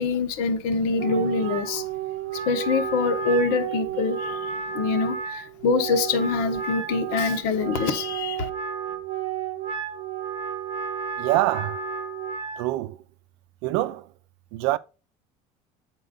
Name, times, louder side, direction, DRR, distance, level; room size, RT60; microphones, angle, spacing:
voice 1, 0.0-1.9 2.3-8.5, left 4 dB, 70° left, 1.4 m, -25 dB
Wind instrument woodwind instrument, 0.9-12.6, right 7 dB, 40° right, 1.3 m, -32 dB
voice 2, 11.2-11.8 12.6-13.0 13.6-14.1 14.5-14.8, right 17 dB, 75° right, 0.5 m, -25 dB
9.2 x 4.6 x 3.8 m
cardioid pair, 170°, 15 cm